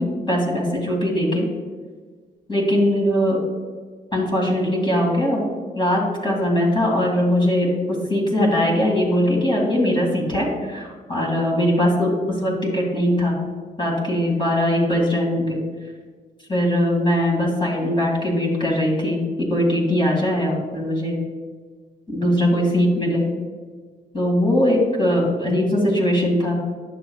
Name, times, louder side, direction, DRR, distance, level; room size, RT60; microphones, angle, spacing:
voice 1, 0.0-1.5 2.5-3.4 4.1-5.4 5.8-12.1 12.4-13.4 13.8-15.6 16.5-19.2 19.5-21.2 22.1-23.3 24.1-26.5, left 1 dB, 30° left, -2 dB, 2.2 m, -20 dB
10.5 x 6.5 x 2.3 m, 1.5 s
wide cardioid pair, 120°, 17 cm